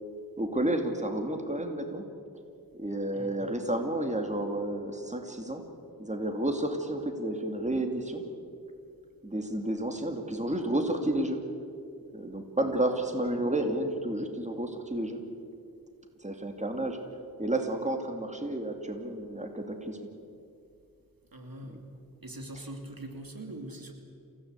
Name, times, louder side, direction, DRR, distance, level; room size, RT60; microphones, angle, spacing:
voice 1, 0.4-2.0 2.7-5.6 6.0-8.2 9.2-11.4 12.1-15.2 16.2-17.0 17.4-20.0, right 1 dB, 20° right, 4 dB, 2.5 m, -31 dB
voice 2, 3.1-3.5 21.3-21.8 22.2-23.9, right 1 dB, 70° right, 3 dB, 2.8 m, -42 dB
27.5 x 16.5 x 8.3 m, 2.4 s
wide cardioid pair, 60°, 36 cm